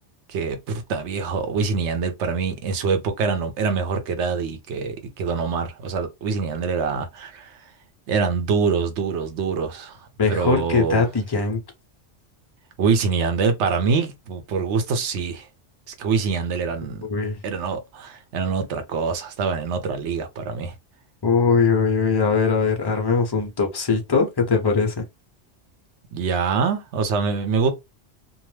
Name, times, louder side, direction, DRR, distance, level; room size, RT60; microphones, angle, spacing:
voice 1, 0.3-7.6 8.1-11.1 12.8-15.5 16.0-17.0 17.4-20.7 26.1-27.7, right 5 dB, 75° right, 0.9 m, -25 dB
voice 2, 10.2-11.6 17.0-17.4 21.2-25.0, left 4 dB, 25° left, 0.6 m, -21 dB
2.7 x 2.0 x 3.1 m
omnidirectional pair, 1.2 m